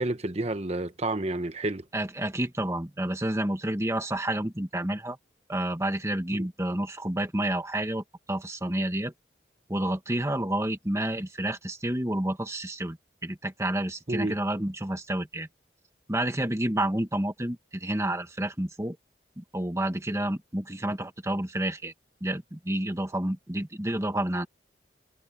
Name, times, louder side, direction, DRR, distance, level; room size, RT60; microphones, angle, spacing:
voice 1, 0.0-1.8 6.3-6.5 14.1-14.4, right 2 dB, 35° right, 1.2 m, -30 dB
voice 2, 1.9-5.2 5.5-9.1 9.7-13.0 13.2-15.5 16.1-19.0 19.4-21.9 22.2-24.5, right 1 dB, 15° right, 1.7 m, -29 dB
head